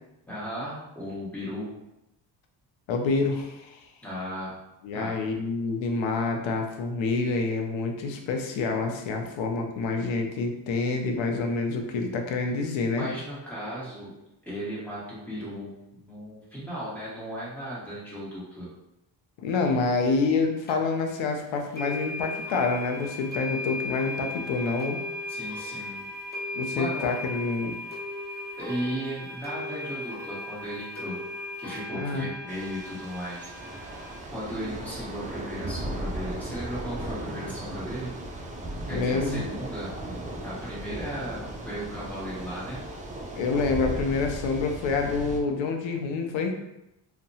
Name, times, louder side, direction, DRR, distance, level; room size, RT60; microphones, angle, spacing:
voice 1, 0.2-1.7 4.0-4.6 4.9-5.2 12.9-14.1 14.4-18.7 25.3-26.1 26.4-27.1 28.6-31.2 31.6-34.0 34.3-38.1 38.9-39.9 40.4-42.8, equal, 5° left, -9 dB, 1.3 m, -36 dB
voice 2, 2.9-3.8 4.8-13.1 19.4-25.0 26.5-27.8 31.9-32.3 38.9-39.4 43.4-46.5, left 4 dB, 80° left, 3 dB, 0.6 m, -27 dB
sound 1, 20.7-20.8 21.8-34.2, left 2 dB, 20° left, 0.6 m, -37 dB
Thunder / Rain, 32.5-45.4, right 1 dB, 20° right, 0.3 m, -37 dB
2.7 x 2.2 x 2.7 m, 0.88 s
cardioid pair, 90°, 45 cm